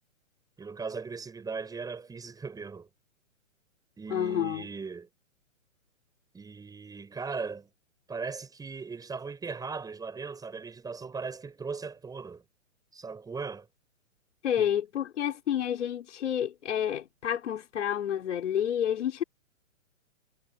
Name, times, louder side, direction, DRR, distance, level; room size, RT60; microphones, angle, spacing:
voice 1, 0.6-2.9 4.0-5.1 6.3-7.7 8.1-12.4 12.9-13.7 14.6-14.7, right 4 dB, 10° right, 5.5 m, -38 dB
voice 2, 4.1-4.7 14.4-19.2, left 9 dB, 60° left, 5.3 m, -29 dB
hypercardioid pair, 130°, 40 cm